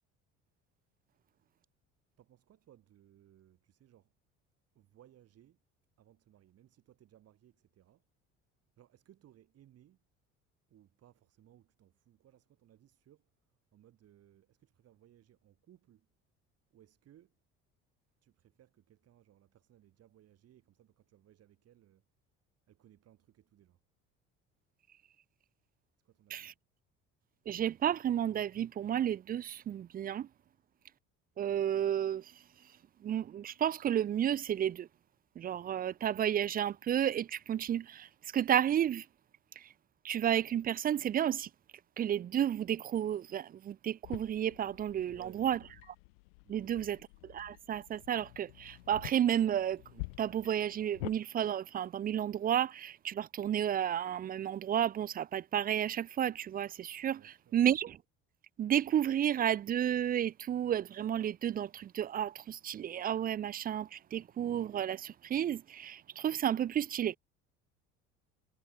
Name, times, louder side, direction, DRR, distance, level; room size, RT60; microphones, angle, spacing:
voice 1, 2.2-4.1 4.7-5.6 6.0-8.0 8.8-10.0 10.7-13.3 13.7-16.1 16.7-17.4 18.2-22.0 22.7-23.8 26.0-26.6 45.0-45.8 46.4-46.9 57.1-57.6, right 12 dB, 55° right, 2.9 m, -62 dB
voice 2, 27.5-30.3 31.4-32.4 33.0-34.9 35.4-39.1 39.6-39.7 40.0-41.5 42.0-45.6 46.5-47.0 47.2-58.0 58.6-67.2, right 10 dB, 30° right, 0.4 m, -32 dB
sound 1, 44.0-51.2, left 29 dB, 90° left, 0.8 m, -48 dB
supercardioid pair, 85°, 29 cm